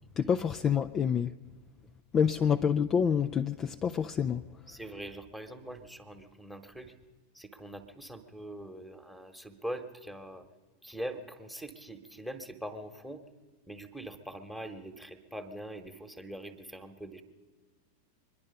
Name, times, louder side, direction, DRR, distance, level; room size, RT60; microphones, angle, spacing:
voice 1, 0.2-1.3 2.1-4.4, left 7 dB, 25° left, 0.4 m, -27 dB
voice 2, 4.7-6.9 7.3-10.4 10.8-13.2 13.7-17.2, right 1 dB, ahead, 1.3 m, -42 dB
24.0 x 11.0 x 5.3 m
figure-of-eight pair, 90°, 0 cm